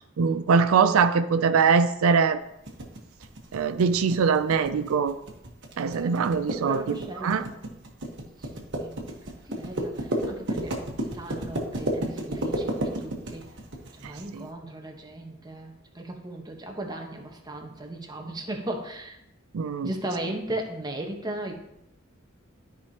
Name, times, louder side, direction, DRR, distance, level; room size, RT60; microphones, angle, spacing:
voice 1, 0.0-2.4 3.5-5.2 5.8-7.4 14.0-14.4 19.5-19.9, right 5 dB, 90° right, 10 dB, 0.4 m, -23 dB
sound 1, 2.7-14.2, right 1 dB, 60° right, 1.2 m, -32 dB
voice 2, 5.9-6.2 6.5-7.5 8.8-10.7 11.1-13.4 14.0-19.2 19.8-21.6, right 1 dB, 20° right, 1 dB, 1.1 m, -36 dB
12.5 x 4.9 x 2.9 m, 0.80 s
head